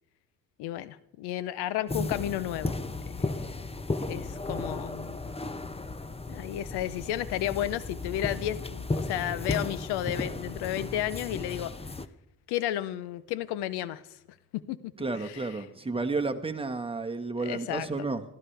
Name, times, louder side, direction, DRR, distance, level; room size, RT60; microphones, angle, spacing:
voice 1, 0.6-2.8 3.1-3.3 4.1-5.2 6.3-11.7 12.5-14.0 14.5-14.9 15.2-15.6 17.4-17.9, left 13 dB, 90° left, 17 dB, 0.8 m, -32 dB
sound 1, 1.9-12.1, left 2 dB, 15° left, 0.9 m, -35 dB
voice 2, 15.0-18.2, right 3 dB, 15° right, 5 dB, 1.6 m, -31 dB
24.5 x 14.5 x 3.4 m, 0.79 s
supercardioid pair, 70°, 38 cm